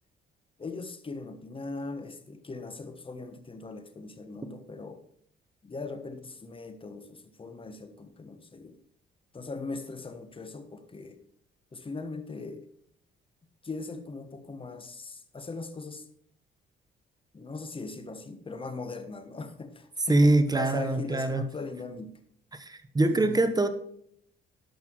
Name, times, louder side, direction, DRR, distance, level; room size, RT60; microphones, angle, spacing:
voice 1, 0.6-5.0 5.6-8.8 9.3-11.2 11.7-12.7 13.6-16.0 17.3-22.1 23.1-23.4, left 3 dB, 25° left, 9 dB, 1.4 m, -40 dB
voice 2, 20.1-21.4 22.5-23.7, right 2 dB, 20° right, 10 dB, 1.1 m, -24 dB
12.0 x 5.9 x 4.7 m, 0.67 s
cardioid pair, 90°, 20 cm